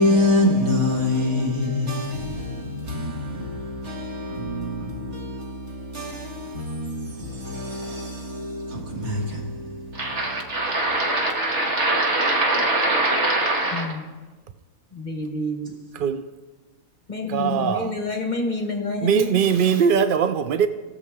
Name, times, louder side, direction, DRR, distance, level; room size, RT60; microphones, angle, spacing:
voice 1, 0.0-13.9, equal, 55° right, 1.9 m, -24 dB
voice 2, 13.7-14.1 14.9-15.8 17.1-19.4, left 2 dB, 35° left, 1.1 m, -28 dB
voice 3, 15.9-16.3 17.3-18.0 19.0-20.7, right 7 dB, 85° right, 0.4 m, -21 dB
18.0 x 6.6 x 3.5 m
omnidirectional pair, 1.5 m